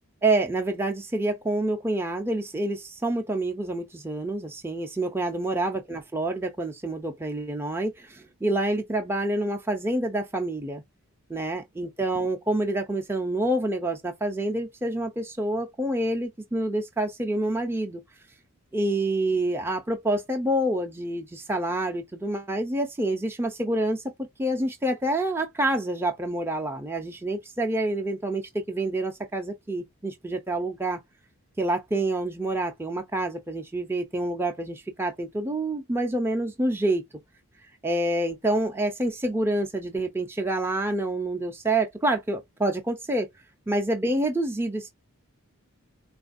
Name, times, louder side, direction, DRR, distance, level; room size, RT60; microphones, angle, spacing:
voice 1, 0.2-10.8 11.3-18.0 18.7-31.0 31.6-37.0 37.8-43.3 43.7-44.9, right 1 dB, 10° right, 0.4 m, -27 dB
4.1 x 2.4 x 2.4 m
head